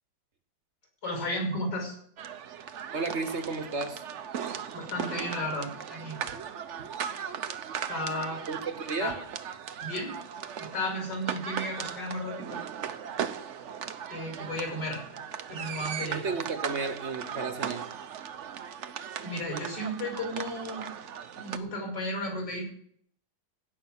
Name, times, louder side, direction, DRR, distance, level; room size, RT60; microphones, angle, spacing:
voice 1, 1.0-2.0 4.7-6.2 7.9-8.4 9.0-9.1 9.8-10.2 10.6-12.6 14.1-15.0 15.5-16.2 18.6-18.8 19.2-20.9 21.3-22.6, left 1 dB, 60° left, 1 dB, 6.5 m, -34 dB
sound 1, 2.2-21.6, right 8 dB, 60° right, 0.7 m, -38 dB
voice 2, 2.9-4.0 6.3-6.4 8.5-9.2 16.1-17.9, right 4 dB, 45° right, 7 dB, 1.1 m, -33 dB
16.5 x 5.8 x 8.8 m, 0.66 s
omnidirectional pair, 2.1 m